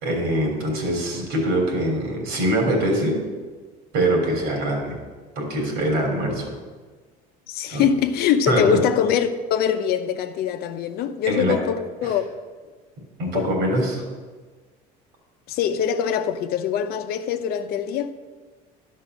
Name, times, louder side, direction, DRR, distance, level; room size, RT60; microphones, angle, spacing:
voice 1, 0.0-3.2 3.9-5.0 5.4-6.5 7.7-7.8 8.5-8.8 11.3-11.5 12.0-12.1 13.2-14.0, right 1 dB, 80° right, 3.5 m, -23 dB
voice 2, 7.5-12.2 13.2-13.6 15.5-18.1, left 8 dB, 65° left, 0.8 m, -23 dB
11.5 x 5.6 x 6.3 m
cardioid pair, 110°, 18 cm